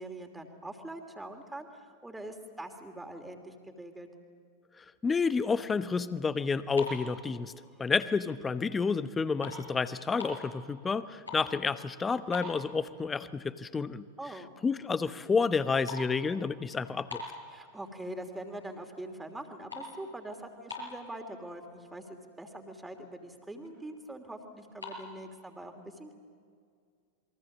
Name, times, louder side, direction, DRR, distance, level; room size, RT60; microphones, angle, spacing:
voice 1, 0.0-4.1 7.7-7.9 14.2-14.5 17.5-26.1, right 1 dB, 5° right, 5 dB, 3.0 m, -43 dB
voice 2, 4.8-7.5 7.8-14.0 14.6-17.2, left 5 dB, 15° left, 14 dB, 0.9 m, -30 dB
sound 1, 6.6-8.0 8.5-8.7 9.0-10.5 11.0-11.6 11.9-12.0 12.3-13.2 13.6-13.7 14.2-14.3 14.6-14.9 15.2-18.0 18.5-18.9 19.2-21.2 21.9-22.0 22.2-22.4 22.8-22.9 23.1-23.8 24.6-25.0, left 2 dB, 80° left, 6.5 m, -43 dB
28.5 x 22.5 x 7.4 m, 2.1 s
figure-of-eight pair, 90°, 0 cm